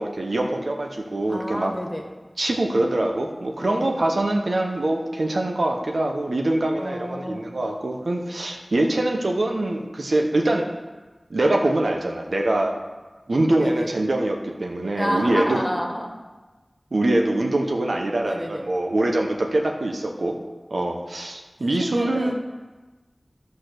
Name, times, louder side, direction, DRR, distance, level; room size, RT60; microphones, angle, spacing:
voice 1, 0.0-1.7 2.4-10.7 11.3-12.8 13.3-15.6 16.9-20.4 20.7-22.3, right 1 dB, 85° right, 1 dB, 1.0 m, -24 dB
voice 2, 1.3-2.1 3.6-3.9 6.8-7.4 13.6-13.9 15.0-16.1 18.2-18.7 21.8-22.3, equal, 5° left, 1 dB, 1.7 m, -29 dB
12.5 x 4.2 x 6.6 m, 1.2 s
wide cardioid pair, 45°, 0 cm